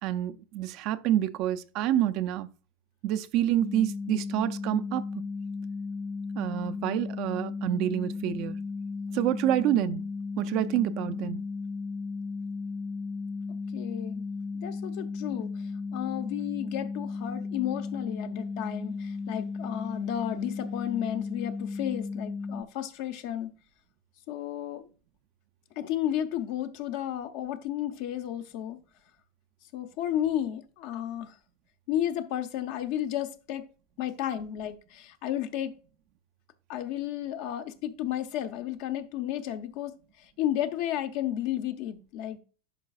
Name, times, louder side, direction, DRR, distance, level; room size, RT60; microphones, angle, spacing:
voice 1, 0.0-2.5 3.0-5.0 6.4-8.6 9.1-10.0 10.4-11.4, right 12 dB, 50° right, 0.5 m, -27 dB
sound 1, 3.6-22.6, left 4 dB, 20° left, 0.5 m, -35 dB
voice 2, 13.7-14.3 14.6-15.5 15.9-23.5 24.3-24.9 25.8-28.8 29.7-31.4 31.9-33.7 34.0-35.7 36.7-42.4, left 11 dB, 60° left, 0.8 m, -32 dB
11.0 x 4.7 x 2.4 m
hypercardioid pair, 85°, 0 cm